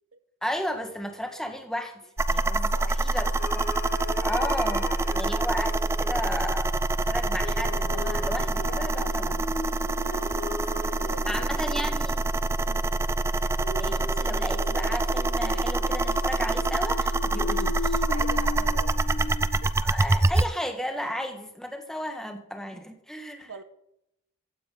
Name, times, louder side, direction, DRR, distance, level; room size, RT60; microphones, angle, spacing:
voice 1, 0.4-2.0 2.3-3.7 4.2-4.9 5.1-9.5 11.3-12.2 13.8-18.0 19.8-23.5, equal, ahead, 5 dB, 1.5 m, -34 dB
sound 1, 2.2-20.5, right 2 dB, 15° right, 0.3 m, -26 dB
sound 2, 3.4-6.3 7.4-12.2 13.6-19.7, left 3 dB, 50° left, 1.4 m, -38 dB
voice 2, 10.8-11.7 12.6-12.9 18.0-19.4 19.6-19.7 23.5-23.6, right 4 dB, 90° right, 10 dB, 1.2 m, -43 dB
15.0 x 9.3 x 3.9 m, 0.78 s
head